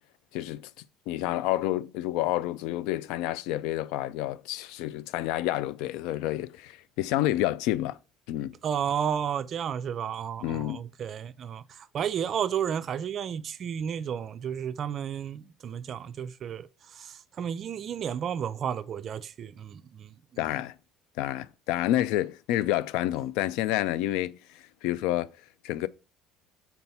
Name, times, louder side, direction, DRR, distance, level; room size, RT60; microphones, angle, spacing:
voice 1, 0.3-0.7 1.1-8.0 8.3-8.6 10.4-10.8 20.4-20.7 21.2-25.3 25.6-25.9, left 14 dB, 85° left, 0.3 m, -29 dB
voice 2, 8.6-20.5, right 8 dB, 40° right, 0.4 m, -32 dB
4.4 x 4.1 x 5.5 m
cardioid pair, 140°, 0 cm